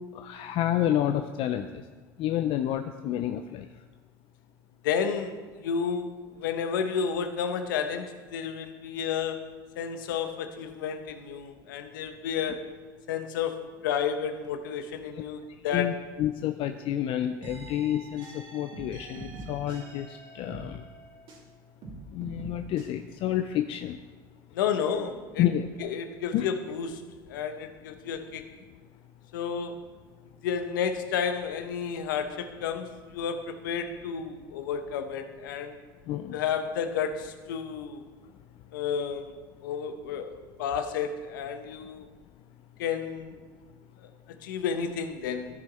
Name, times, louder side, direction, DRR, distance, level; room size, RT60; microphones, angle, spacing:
voice 1, 0.1-1.8 2.2-3.7 15.7-20.8 22.1-24.0 25.4-25.9 26.3-26.5 36.1-36.4, left 11 dB, 60° left, 7 dB, 0.5 m, -29 dB
voice 2, 4.8-12.8 13.1-16.0 24.5-25.5 25.8-28.6 29.3-29.8 30.4-35.8 36.3-38.1 38.7-42.1 42.8-43.4 44.0-45.6, left 7 dB, 90° left, 8 dB, 0.9 m, -31 dB
sound 1, 17.4-21.5 21.8-22.9, right 2 dB, 55° right, 2.9 m, -44 dB
14.5 x 6.2 x 4.3 m, 1.4 s
supercardioid pair, 90°, 11 cm